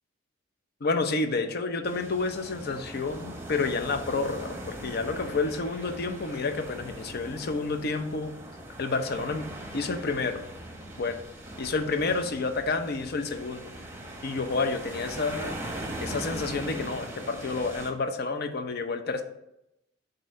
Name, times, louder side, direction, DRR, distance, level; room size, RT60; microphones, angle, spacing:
voice 1, 0.8-8.3 8.8-10.4 11.0-11.2 11.6-13.7 14.2-15.6 16.0-19.2, left 3 dB, 55° left, 7 dB, 0.6 m, -29 dB
sound 1, 1.8-17.9, right 1 dB, 15° right, 0.8 m, -40 dB
7.6 x 2.8 x 5.2 m, 0.85 s
head